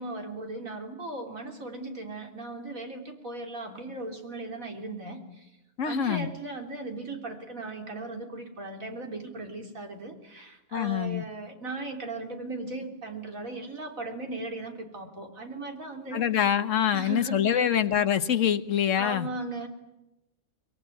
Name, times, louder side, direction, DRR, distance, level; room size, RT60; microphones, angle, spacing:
voice 1, 0.0-5.6 5.8-16.2 16.9-17.7 19.0-19.7, right 2 dB, 85° right, 3 dB, 3.8 m, -37 dB
voice 2, 5.8-6.3 10.7-11.2 16.1-19.3, left 9 dB, 70° left, 10 dB, 1.5 m, -25 dB
24.0 x 22.5 x 9.3 m, 0.96 s
omnidirectional pair, 1.4 m